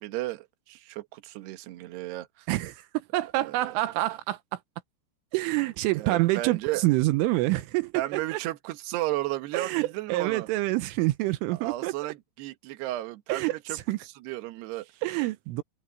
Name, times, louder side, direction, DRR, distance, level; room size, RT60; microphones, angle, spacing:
voice 1, 0.0-2.5 3.4-3.5 5.9-6.8 7.9-10.5 11.5-14.9, right 16 dB, 65° right, 3.1 m, -34 dB
voice 2, 2.5-4.6 5.3-8.4 9.5-11.9 13.3-14.0 15.0-15.6, right 18 dB, 85° right, 3.3 m, -27 dB
open air
omnidirectional pair, 5.8 m